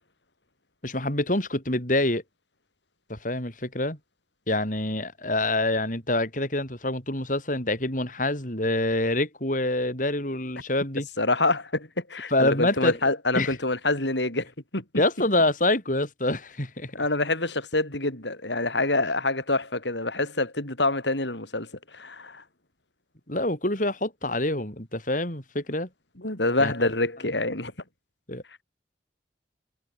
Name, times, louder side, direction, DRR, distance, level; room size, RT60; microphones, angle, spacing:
voice 1, 0.8-2.2 3.1-4.0 4.5-11.1 12.3-13.0 13.3-13.6 14.9-16.9 23.3-25.9 26.6-26.7 28.3-28.4, left 1 dB, 45° left, 7.0 m, -26 dB
voice 2, 11.2-14.8 17.0-21.7 21.9-22.4 26.2-27.7, left 2 dB, 80° left, 7.7 m, -26 dB
head